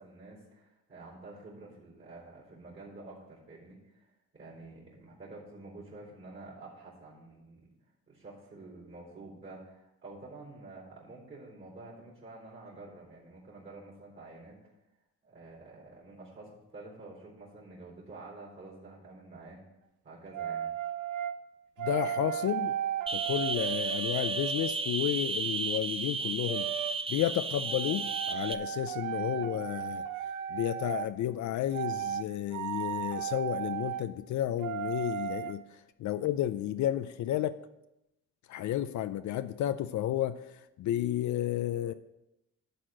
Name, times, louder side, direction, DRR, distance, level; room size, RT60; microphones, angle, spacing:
voice 1, 0.0-7.7 8.1-14.8 15.2-19.6 20.0-20.7, right 2 dB, 40° right, -3 dB, 3.8 m, -49 dB
sound 1, 20.3-21.4 21.8-24.8 26.5-27.0 27.7-31.1 31.7-32.3 32.5-34.0 34.6-35.5, right 10 dB, 75° right, 0.7 m, -35 dB
voice 2, 21.8-22.8 23.1-26.7 27.1-30.0 30.5-35.6 36.0-37.6 38.5-41.9, left 12 dB, 70° left, 11 dB, 0.5 m, -32 dB
sound 2, 23.1-28.5, right 4 dB, 20° right, 0.5 m, -33 dB
11.5 x 4.3 x 7.5 m, 0.91 s
cardioid pair, 90°, 30 cm